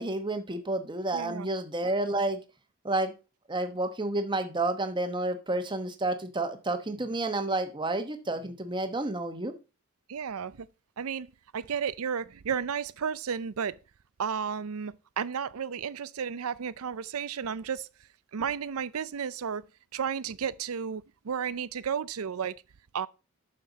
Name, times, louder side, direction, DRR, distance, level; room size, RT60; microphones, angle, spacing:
voice 1, 0.0-2.4 2.8-3.1 3.5-9.5, right 2 dB, 20° right, 1.1 m, -30 dB
voice 2, 1.1-1.5 10.1-10.7 11.0-13.8 14.2-17.9 18.3-19.7 19.9-22.6 22.9-23.1, right 7 dB, 85° right, 0.5 m, -33 dB
9.4 x 6.6 x 4.0 m
head